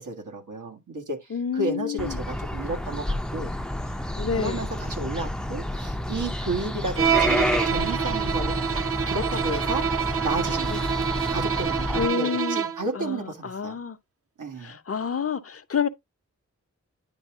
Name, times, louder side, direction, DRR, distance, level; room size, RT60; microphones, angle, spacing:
voice 1, 0.0-3.5 3.8-4.0 4.4-8.6 9.1-9.9 10.2-13.8 14.4-14.8, right 2 dB, 90° right, 1.8 m, -33 dB
voice 2, 1.3-2.2 4.2-4.6 10.7-10.8 11.9-12.6 12.9-14.0 14.6-15.9, left 6 dB, 50° left, 0.6 m, -29 dB
sound 1, 2.0-12.1, left 1 dB, ahead, 0.5 m, -30 dB
Bowed string instrument, 7.0-12.9, right 7 dB, 50° right, 0.7 m, -26 dB
9.9 x 3.5 x 3.5 m
wide cardioid pair, 95°, 30 cm